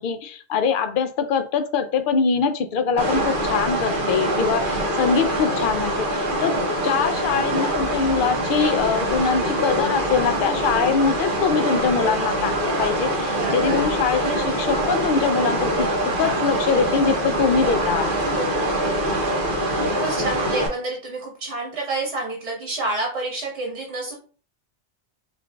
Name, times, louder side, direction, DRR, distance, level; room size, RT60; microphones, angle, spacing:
voice 1, 0.0-6.6 6.8-15.9 16.2-18.1, left 5 dB, 60° left, 7 dB, 0.6 m, -23 dB
sound 1, 3.0-20.7, right 1 dB, 50° right, 1.0 m, -24 dB
voice 2, 13.2-13.8 18.3-19.4 19.9-24.1, right 2 dB, 75° right, -2 dB, 1.3 m, -29 dB
5.6 x 2.6 x 2.3 m, 0.40 s
omnidirectional pair, 1.1 m